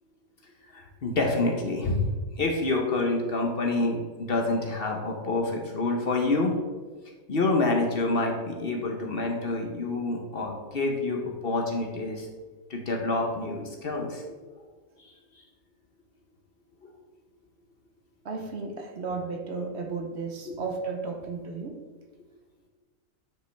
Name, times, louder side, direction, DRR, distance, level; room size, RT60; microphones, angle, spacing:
voice 1, 0.7-2.1 2.4-6.5 7.3-12.3 12.7-14.2 14.5-14.6 16.8-16.9 20.5-20.6, left 2 dB, 50° left, 1 dB, 1.0 m, -27 dB
voice 2, 18.2-21.8, right 4 dB, 55° right, 3 dB, 1.0 m, -34 dB
9.2 x 5.0 x 3.3 m, 1.4 s
omnidirectional pair, 1.4 m